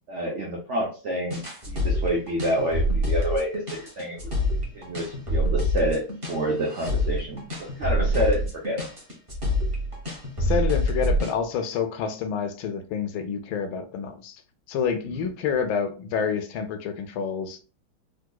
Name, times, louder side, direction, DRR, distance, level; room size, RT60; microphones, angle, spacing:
voice 1, 0.1-4.2 4.7-6.0 6.3-8.9, right 1 dB, 75° right, 0.6 m, -28 dB
sound 1, 1.3-11.4, left 1 dB, 25° right, 0.8 m, -26 dB
voice 2, 10.4-14.4 14.7-17.6, left 6 dB, 85° left, 1.4 m, -28 dB
3.8 x 2.8 x 2.2 m
omnidirectional pair, 2.1 m